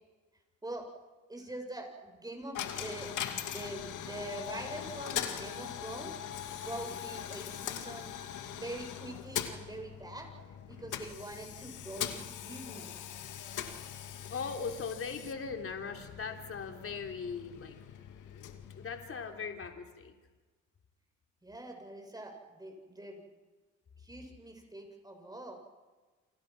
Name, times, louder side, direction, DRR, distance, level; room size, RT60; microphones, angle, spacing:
voice 1, 1.3-3.1 3.3-6.2 6.6-8.1 8.5-10.3 10.7-12.9 21.4-23.3 24.0-25.6, right 1 dB, 15° right, 3 dB, 7.3 m, -44 dB
Coin (dropping), 2.5-19.5, left 10 dB, 80° left, 2.3 m, -41 dB
voice 2, 14.3-17.8 18.3-20.1, left 5 dB, 45° left, 4 dB, 3.6 m, -39 dB
29.5 x 26.0 x 6.2 m, 1.3 s
cardioid pair, 90°, 30 cm